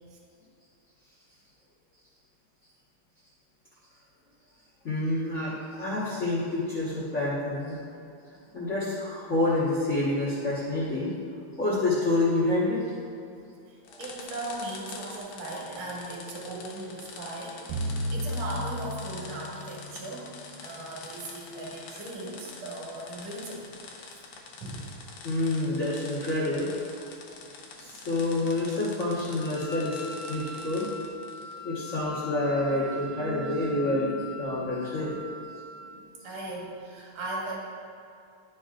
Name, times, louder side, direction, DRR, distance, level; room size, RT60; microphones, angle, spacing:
voice 1, 4.8-7.7 8.5-11.1 11.6-12.8 25.2-26.7 27.8-30.0 30.3-30.9 31.6-35.1, left 2 dB, 50° left, -9 dB, 0.8 m, -28 dB
voice 2, 13.7-20.3 20.6-23.7 24.6-25.0 36.2-37.6, right 2 dB, 60° right, -4 dB, 2.3 m, -38 dB
sound 1, 13.9-31.6, left 4 dB, 75° left, 1.7 m, -46 dB
sound 2, 17.7-20.8, equal, 75° right, 2.4 m, -34 dB
Wind instrument woodwind instrument, 29.4-36.0, left 1 dB, 30° right, 0.6 m, -42 dB
11.5 x 5.2 x 2.5 m, 2.6 s
omnidirectional pair, 3.6 m